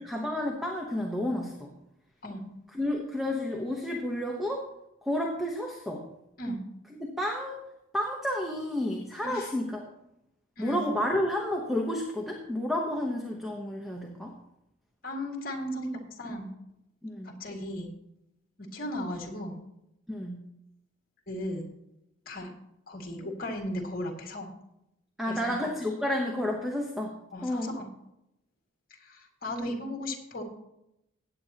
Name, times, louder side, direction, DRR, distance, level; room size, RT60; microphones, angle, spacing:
voice 1, 0.0-1.7 2.7-4.7 5.0-6.1 6.9-7.6 7.9-9.9 10.6-14.3 17.0-17.3 20.1-20.4 25.2-27.1 27.4-27.8, left 1 dB, ahead, 0 dB, 1.0 m, -31 dB
voice 2, 15.0-16.5 17.2-17.9 18.6-19.6 21.3-21.7 22.3-22.5 22.9-24.5 25.3-25.5 27.3-27.9 29.0-30.4, left 1 dB, 45° left, 1 dB, 2.1 m, -36 dB
17.0 x 8.5 x 2.9 m, 0.85 s
head